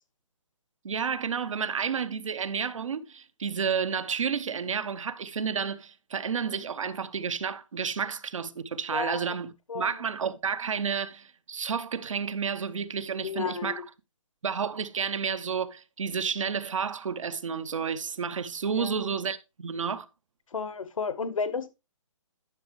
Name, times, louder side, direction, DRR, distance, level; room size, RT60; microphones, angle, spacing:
voice 1, 0.8-13.8 14.4-20.1, right 6 dB, 75° right, 0.9 m, -31 dB
voice 2, 8.9-9.2 9.7-10.0 13.2-13.8 18.7-19.2 20.5-21.7, left 5 dB, 85° left, 1.3 m, -32 dB
11.0 x 6.1 x 3.0 m
hypercardioid pair, 165°, 17 cm